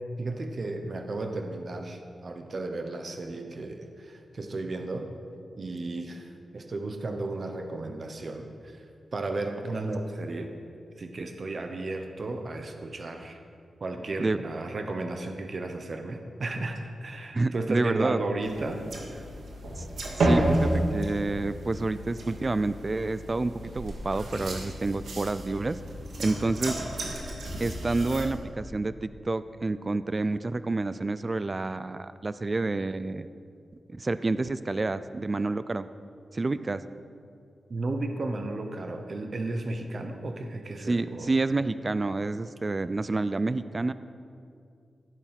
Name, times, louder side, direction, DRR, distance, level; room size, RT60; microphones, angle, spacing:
voice 1, 0.2-5.1 5.6-8.8 9.1-10.5 11.0-13.4 13.8-18.9 19.1-19.2 37.7-41.3, right 2 dB, 45° right, 5 dB, 0.9 m, -34 dB
voice 2, 17.3-18.2 19.8-19.9 20.2-25.8 26.2-26.8 27.6-33.3 33.9-35.9 36.3-36.8 40.8-43.9, right 3 dB, 25° right, 13 dB, 0.3 m, -29 dB
sound 1, 18.4-28.3, right 1 dB, 85° right, 2.2 m, -31 dB
15.5 x 8.1 x 5.8 m, 2.4 s
wide cardioid pair, 155°, 0 cm